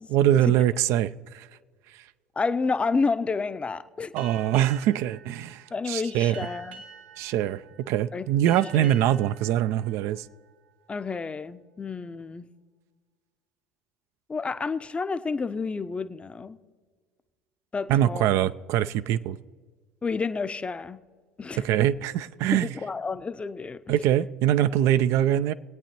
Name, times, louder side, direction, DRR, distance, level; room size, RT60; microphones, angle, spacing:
voice 1, 0.1-1.5 4.1-6.4 7.2-10.2 17.9-19.4 21.6-22.7 23.9-25.5, right 11 dB, 55° right, 0.4 m, -23 dB
voice 2, 2.4-4.1 5.7-6.8 8.1-8.3 8.7-8.9 10.9-12.5 14.3-16.6 17.7-18.3 20.0-21.0 21.4-21.6 22.5-23.8, left 4 dB, 20° left, 0.6 m, -30 dB
Boat Water vehicle, 4.2-11.2, right 5 dB, 75° right, 1.3 m, -48 dB
22.0 x 9.0 x 3.0 m
hypercardioid pair, 65°, 5 cm